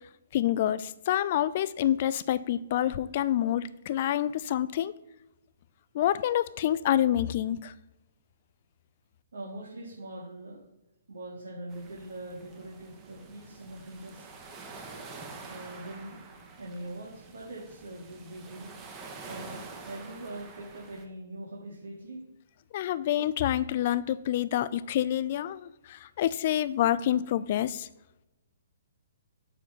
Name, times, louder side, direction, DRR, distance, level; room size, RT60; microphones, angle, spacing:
voice 1, 0.3-4.9 5.9-7.7 22.7-27.9, left 12 dB, 50° left, 16 dB, 0.5 m, -27 dB
voice 2, 9.3-10.6 11.1-14.3 15.3-16.2 16.6-18.7 19.3-22.2, right 1 dB, 75° right, -3 dB, 2.2 m, -42 dB
sound 1, 11.7-21.0, right 4 dB, 25° right, 1.3 m, -47 dB
7.2 x 4.4 x 6.7 m, 0.96 s
hypercardioid pair, 135°, 0 cm